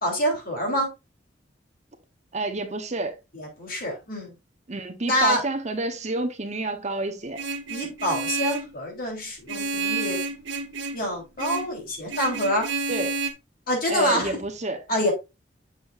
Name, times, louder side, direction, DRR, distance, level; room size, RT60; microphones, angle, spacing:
voice 1, 0.0-0.9 3.3-4.3 5.0-5.4 7.7-10.2 10.9-12.7 13.7-14.3 14.9-15.1, equal, 50° left, 3.6 m, -26 dB
voice 2, 2.3-3.2 4.7-7.4 7.8-7.9 12.9-13.2 13.9-14.8, right 2 dB, 40° right, 0.9 m, -29 dB
Vehicle horn car horn honking, 7.4-8.7 9.5-11.0 11.4-11.7 12.1-13.3, right 3 dB, 85° right, 1.2 m, -30 dB
7.8 x 7.1 x 2.5 m
head